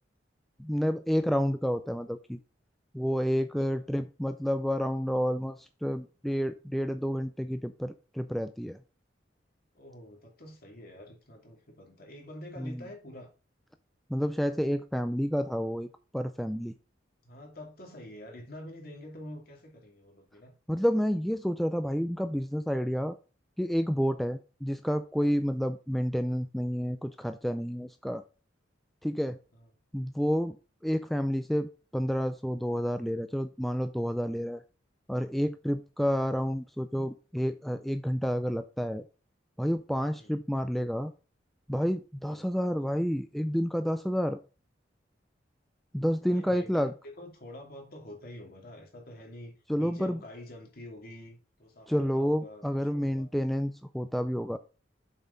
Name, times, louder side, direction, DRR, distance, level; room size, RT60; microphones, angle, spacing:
voice 1, 0.6-2.4 2.9-8.8 12.6-12.8 14.1-16.7 20.7-23.2 23.6-28.2 29.0-29.4 29.9-30.6 30.8-34.6 35.1-39.0 39.6-41.1 41.7-44.4 45.9-46.9 49.7-50.2 51.9-54.6, equal, ahead, 0.4 m, -29 dB
voice 2, 9.7-13.3 17.2-20.5 29.5-29.7 40.2-40.4 42.3-42.5 46.3-52.7 52.9-53.3, left 1 dB, 55° left, 2.6 m, -47 dB
7.2 x 5.6 x 3.9 m
head